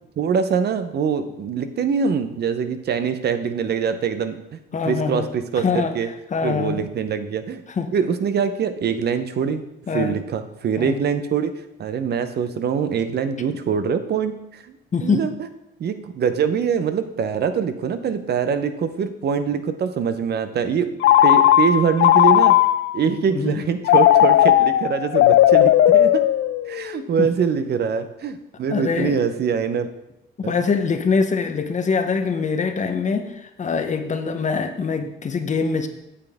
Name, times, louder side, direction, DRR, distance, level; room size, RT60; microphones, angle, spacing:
voice 1, 0.2-6.1 6.4-7.6 7.9-9.6 9.9-11.5 11.8-15.3 15.8-22.6 22.9-26.3 26.7-29.9 30.4-30.5, right 6 dB, 55° right, 10 dB, 0.7 m, -24 dB
voice 2, 4.7-5.3 5.6-5.9 6.3-6.8 7.8-7.9 9.9-10.2 10.8-11.0 14.9-15.3 23.3-23.6 27.2-27.3 28.7-29.2 30.4-35.9, left 5 dB, 35° left, 8 dB, 0.9 m, -23 dB
Telephone, 21.0-23.0 23.9-26.9, left 12 dB, 75° left, 0.4 m, -15 dB
8.6 x 7.0 x 3.5 m, 0.85 s
cardioid pair, 90°, 20 cm